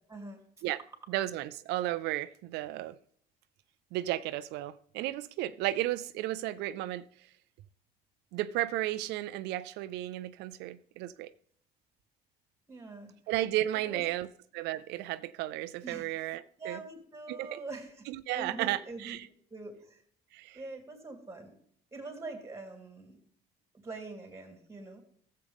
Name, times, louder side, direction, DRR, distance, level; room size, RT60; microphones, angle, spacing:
voice 1, 0.1-0.4 12.7-13.1 13.7-14.0 15.8-16.1 16.6-18.1 18.3-19.2 19.5-20.0 20.5-21.5 21.9-23.2 23.8-25.0, right 3 dB, 15° right, 3.0 m, -44 dB
voice 2, 1.1-3.0 3.9-7.1 8.3-11.3 13.3-14.3 14.5-16.8 17.3-17.6 18.1-19.2 20.3-20.6, right 15 dB, 90° right, 0.4 m, -34 dB
14.0 x 7.6 x 3.5 m
cardioid pair, 110°, 17 cm